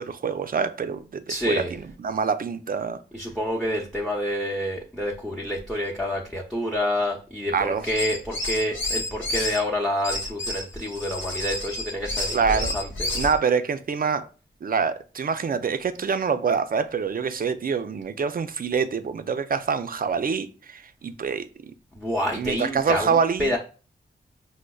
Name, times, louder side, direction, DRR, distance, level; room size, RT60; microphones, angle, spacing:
voice 1, 0.0-3.0 7.5-7.8 12.3-12.7 13.1-14.2 14.6-21.7 22.3-23.5, right 6 dB, 45° right, 0.4 m, -26 dB
voice 2, 1.3-1.7 3.1-13.2 22.0-23.6, left 1 dB, ahead, 0.7 m, -28 dB
sound 1, 7.8-9.6 10.0-13.4, left 2 dB, 80° left, 0.8 m, -30 dB
5.0 x 2.1 x 2.3 m
cardioid pair, 40°, 20 cm